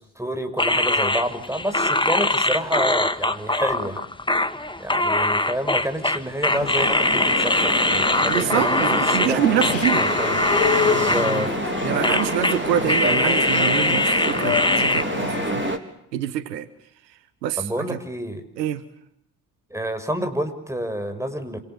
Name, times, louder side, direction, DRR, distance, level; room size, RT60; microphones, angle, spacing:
voice 1, 0.0-4.0 4.8-9.4 10.0-10.4 10.8-11.5 17.6-18.4 19.7-21.6, equal, 5° right, 8 dB, 6.1 m, -28 dB
sound 1, 0.6-9.3 9.6-11.7 12.0-12.6 12.9-15.0, left 2 dB, 10° left, 1.9 m, -22 dB
sound 2, 6.5-15.8, left 7 dB, 85° left, 1.6 m, -29 dB
sound 3, 6.8-15.8, right 3 dB, 25° right, 4.1 m, -28 dB
voice 2, 8.3-10.1 11.8-15.7 16.1-16.7 17.4-18.0 18.6-18.8, right 11 dB, 80° right, 13 dB, 1.4 m, -26 dB
27.5 x 27.0 x 7.0 m, 0.71 s
figure-of-eight pair, 45°, 49 cm